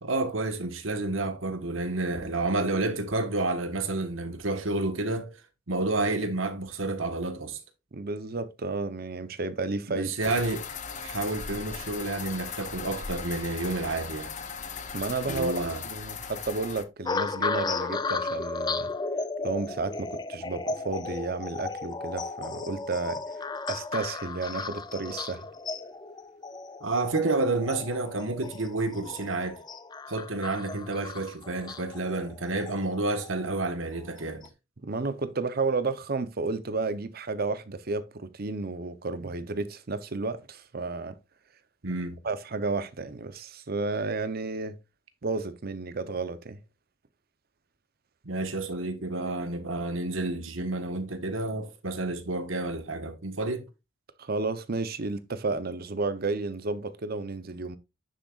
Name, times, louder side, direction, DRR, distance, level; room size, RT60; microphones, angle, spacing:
voice 1, 0.0-5.4 5.7-7.6 9.9-10.6 11.0-14.3 15.2-15.8 26.8-29.6 30.1-34.5 39.2-39.3 41.8-42.2 48.2-53.7, right 2 dB, 80° right, 1.4 m, -30 dB
voice 2, 7.9-10.3 14.9-18.9 19.4-25.4 34.8-41.2 42.2-44.8 45.2-46.6 54.2-57.8, right 3 dB, 50° right, 0.8 m, -32 dB
sound 1, 10.2-16.8, left 6 dB, 40° left, 0.9 m, -38 dB
sound 2, 17.1-33.5 34.2-34.5, left 3 dB, 20° left, 0.5 m, -35 dB
10.0 x 6.6 x 2.4 m
head